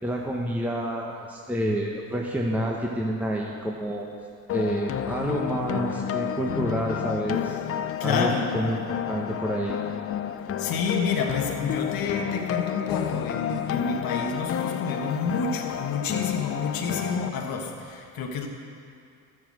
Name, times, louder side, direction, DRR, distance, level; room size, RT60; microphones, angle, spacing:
voice 1, 0.0-4.1 4.5-7.6 8.0-9.8, equal, 5° right, -2 dB, 1.3 m, -28 dB
sound 1, 4.5-17.3, left 9 dB, 35° left, 0.6 m, -30 dB
voice 2, 8.0-8.6 10.6-18.5, left 5 dB, 60° left, 2 dB, 1.5 m, -29 dB
13.0 x 7.7 x 6.3 m, 2.3 s
hypercardioid pair, 65°, 40 cm